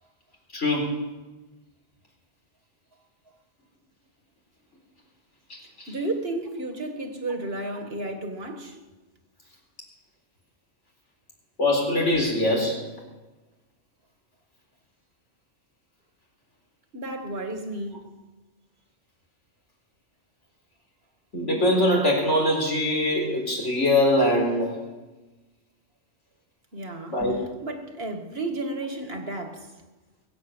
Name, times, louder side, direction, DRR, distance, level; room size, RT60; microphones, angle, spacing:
voice 1, 0.5-0.9 5.5-5.9 11.6-12.8 21.3-24.7 27.1-27.4, left 1 dB, 80° left, 4.5 m, -23 dB
voice 2, 5.9-8.8 16.9-18.1 26.7-27.2 27.6-29.7, right 2 dB, 55° right, 2.1 m, -32 dB
21.0 x 8.6 x 7.3 m
omnidirectional pair, 1.2 m